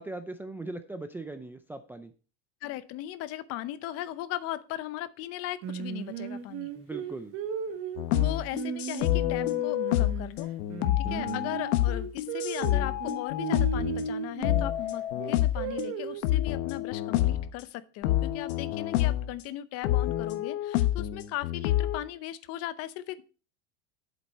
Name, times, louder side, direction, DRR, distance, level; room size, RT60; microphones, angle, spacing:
voice 1, 0.0-2.1 6.7-7.4, right 2 dB, 5° right, 7 dB, 0.4 m, -39 dB
voice 2, 2.6-6.7 8.2-10.5 11.0-23.2, left 14 dB, 45° left, 15 dB, 0.7 m, -38 dB
Singing, 5.6-10.3 10.7-14.7 15.2-16.4, right 7 dB, 45° right, 1.0 m, -36 dB
sound 1, 8.0-14.1 14.4-15.9 16.2-17.5 18.0-19.3 19.8-22.0, left 14 dB, 70° left, 1.1 m, -28 dB
8.2 x 7.4 x 4.1 m, 0.35 s
supercardioid pair, 140°, 33 cm